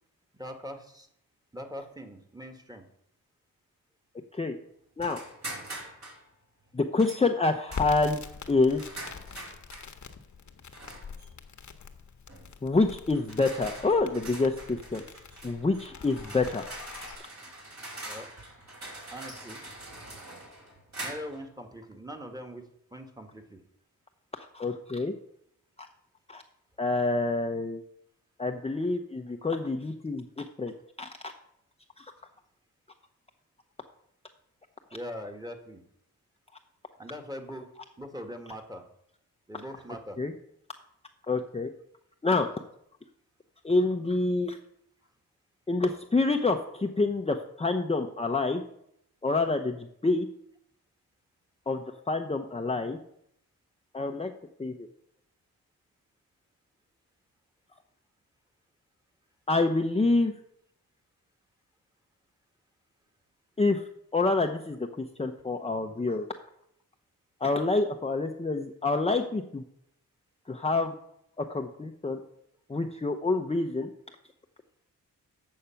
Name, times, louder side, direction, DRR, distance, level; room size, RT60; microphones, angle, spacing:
voice 1, 0.4-1.1 1.5-2.8 18.0-18.3 19.1-19.6 21.0-22.6 22.9-23.6 34.9-35.8 37.0-37.6 38.0-38.8 39.5-40.2, equal, 10° right, 3 dB, 1.7 m, -41 dB
sound 1, 5.0-6.2 7.0-7.3 7.7-9.9 10.7-11.3 12.3-12.5 13.1-21.4, right 2 dB, 50° right, 3.6 m, -43 dB
voice 2, 6.7-8.2 8.5-9.0 12.6-15.0 15.4-16.6 24.3-25.1 26.3-26.4 26.8-27.8 28.4-30.7 31.0-31.1 32.0-32.1 40.2-40.3 41.3-41.7 42.2-42.5 43.6-44.6 45.7-48.6 49.2-50.3 51.7-53.0 53.9-54.3 54.6-54.9 59.5-60.3 63.6-63.8 64.1-66.3 67.4-69.6 70.5-70.9 71.4-72.2 72.7-73.9, left 3 dB, 15° left, 4 dB, 0.7 m, -27 dB
Crackle, 7.7-17.2, left 6 dB, 55° left, 1.1 m, -44 dB
8.3 x 6.5 x 5.8 m, 0.74 s
cardioid pair, 55°, 35 cm